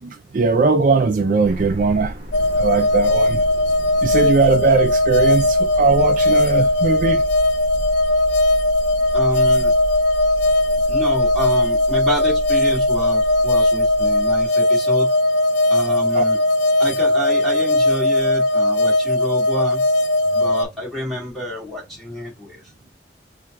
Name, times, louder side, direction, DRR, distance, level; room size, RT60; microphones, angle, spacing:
voice 1, 0.0-2.3 2.6-3.4 4.0-7.2 16.1-16.2, right 4 dB, 50° right, 0.4 m, -19 dB
sound 1, 1.4-14.5, equal, 30° right, 1.1 m, -32 dB
sound 2, 2.3-20.7, left 1 dB, 80° left, 0.4 m, -18 dB
voice 2, 9.1-9.7 10.9-15.1 15.7-16.4 16.8-19.8 20.3-22.6, left 1 dB, ahead, 2.1 m, -28 dB
4.3 x 2.4 x 3.2 m
head